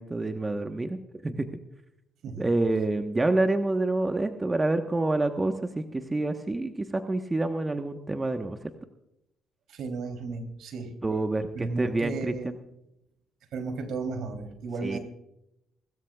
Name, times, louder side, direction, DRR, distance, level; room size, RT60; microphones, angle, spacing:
voice 1, 0.0-1.5 2.4-8.7 11.0-12.3 14.8-15.0, right 2 dB, 20° right, 6 dB, 1.2 m, -27 dB
voice 2, 9.7-10.9 11.5-12.5 13.5-15.0, right 4 dB, 70° right, 5 dB, 3.3 m, -34 dB
29.0 x 13.0 x 2.4 m, 0.81 s
supercardioid pair, 60°, 0 cm